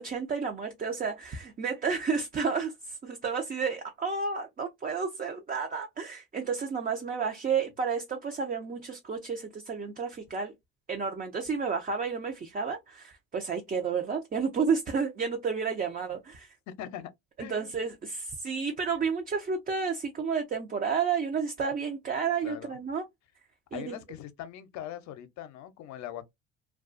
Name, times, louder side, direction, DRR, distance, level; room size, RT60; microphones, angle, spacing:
voice 1, 0.0-10.5 10.9-16.5 17.4-23.0 23.7-24.0, right 5 dB, 25° right, 0.5 m, -31 dB
voice 2, 16.8-17.1 17.4-17.7 22.4-22.8 23.7-26.3, left 11 dB, 60° left, 0.6 m, -41 dB
2.3 x 2.3 x 2.5 m
supercardioid pair, 85°, 32 cm